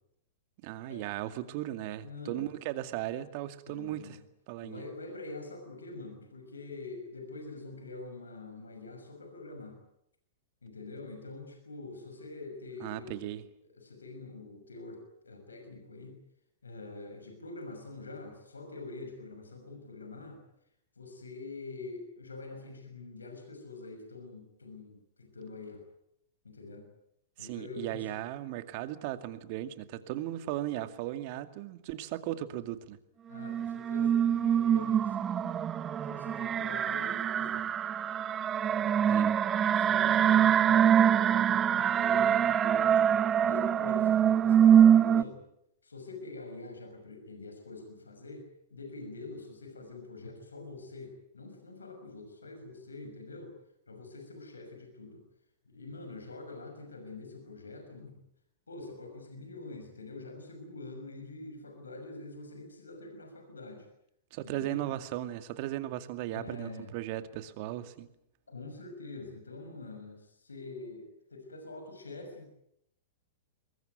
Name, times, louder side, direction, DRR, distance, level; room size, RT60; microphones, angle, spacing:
voice 1, 0.6-4.2 4.5-4.8 12.8-13.4 27.4-33.0 39.1-39.4 64.3-68.1, right 14 dB, 50° right, 10 dB, 2.2 m, -37 dB
voice 2, 2.0-2.5 3.7-4.1 4.6-9.8 10.6-13.3 13.7-16.2 16.6-20.4 21.0-25.8 26.4-26.9 27.4-28.0 33.3-35.6 36.0-37.6 38.7-39.1 39.6-45.4 45.8-48.5 48.7-53.5 53.9-55.2 55.7-58.2 58.7-63.9 64.5-64.9 66.3-66.9 68.5-72.5, left 3 dB, 85° left, 5 dB, 6.1 m, -45 dB
sound 1, 33.3-45.2, right 9 dB, 25° right, 0.9 m, -24 dB
23.0 x 21.0 x 9.5 m, 0.77 s
hypercardioid pair, 105°, 0 cm